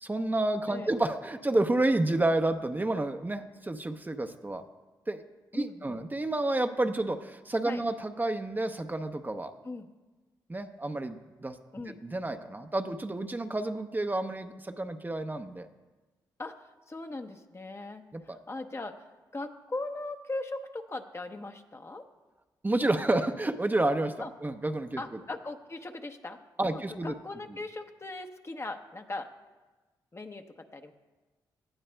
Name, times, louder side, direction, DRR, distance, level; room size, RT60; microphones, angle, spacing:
voice 1, 0.0-4.6 5.1-5.2 5.5-9.5 10.5-11.6 12.0-15.7 18.1-18.4 22.6-25.2 26.6-27.1, right 2 dB, 20° right, 7 dB, 0.7 m, -30 dB
voice 2, 5.5-6.0 7.6-7.8 9.6-9.9 11.7-12.0 16.4-22.1 24.2-24.3 25.0-29.3 30.1-30.9, left 2 dB, 30° left, 6 dB, 0.9 m, -39 dB
17.5 x 11.0 x 2.3 m, 1.2 s
supercardioid pair, 50°, 9 cm